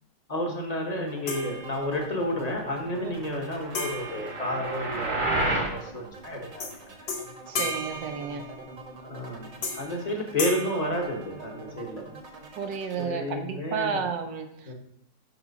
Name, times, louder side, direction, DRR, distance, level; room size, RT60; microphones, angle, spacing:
voice 1, 0.3-7.1 9.0-12.0 13.0-14.1 14.7-14.8, left 1 dB, 25° left, 1 dB, 1.0 m, -31 dB
sound 1, 1.1-13.1, right 2 dB, 50° right, 1.3 m, -45 dB
sound 2, 1.3-2.3 3.7-5.3 6.6-6.8 7.1-8.9 9.6-10.0 10.4-11.8, left 2 dB, 75° left, 2.0 m, -35 dB
sound 3, 3.5-5.8, right 2 dB, 35° right, 0.8 m, -29 dB
voice 2, 7.5-8.5 12.6-14.7, right 6 dB, 75° right, 6 dB, 1.3 m, -32 dB
6.0 x 6.0 x 4.0 m, 0.73 s
omnidirectional pair, 2.0 m